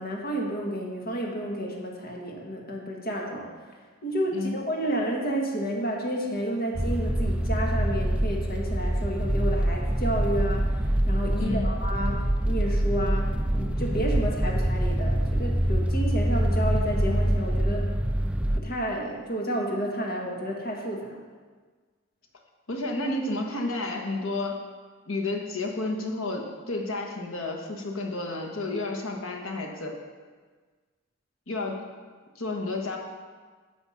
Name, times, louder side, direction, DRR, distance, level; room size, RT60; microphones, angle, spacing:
voice 1, 0.0-3.5 4.0-10.8 11.1-17.9 18.5-21.2, right 1 dB, 45° left, 0 dB, 1.7 m, -31 dB
sound 1, 6.8-18.6, right 1 dB, 5° right, 0.3 m, -25 dB
voice 2, 22.7-24.6 25.0-30.0 31.5-31.8 32.3-33.0, left 2 dB, 80° left, 1 dB, 1.6 m, -31 dB
10.0 x 7.0 x 5.8 m, 1.5 s
head